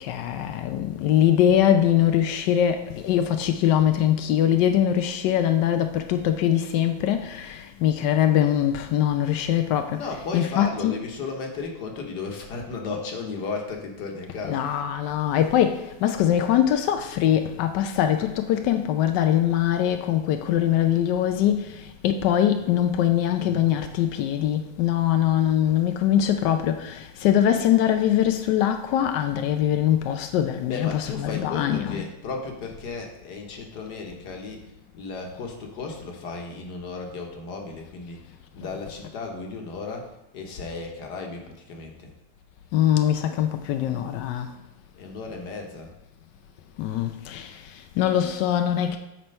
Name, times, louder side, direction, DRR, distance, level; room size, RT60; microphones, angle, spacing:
voice 1, 0.0-11.0 14.3-32.0 38.6-38.7 42.7-44.5 46.8-49.0, left 10 dB, 80° left, 1.0 m, -22 dB
voice 2, 9.9-14.6 30.6-40.1 40.3-42.1 44.9-45.9, left 4 dB, 55° left, 1.6 m, -35 dB
7.6 x 4.4 x 5.3 m
omnidirectional pair, 2.3 m